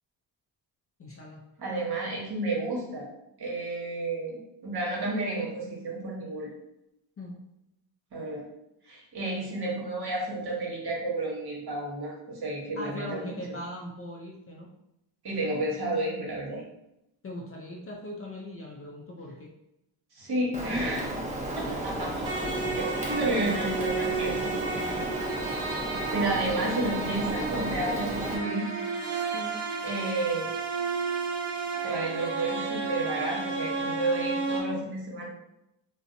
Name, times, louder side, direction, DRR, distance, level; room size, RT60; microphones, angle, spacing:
voice 1, 1.0-1.4 7.2-7.4 12.8-14.7 17.2-19.5 23.2-23.6 24.3-24.4 24.7-25.1 29.3-29.6, left 1 dB, 30° left, -2 dB, 0.4 m, -40 dB
voice 2, 1.6-3.0 3.4-4.4 4.6-6.5 8.1-8.4 8.8-13.2 15.2-16.6 20.1-21.1 21.5-22.3 22.8-24.3 24.7-24.9 26.1-28.7 29.8-30.5 31.8-35.2, right 2 dB, 50° right, -3 dB, 1.1 m, -31 dB
Rain, 20.5-28.4, right 1 dB, 15° right, 0.7 m, -34 dB
sound 1, 22.2-34.6, right 4 dB, 75° right, 0.9 m, -32 dB
2.5 x 2.1 x 2.5 m, 0.86 s
cardioid pair, 65°, 49 cm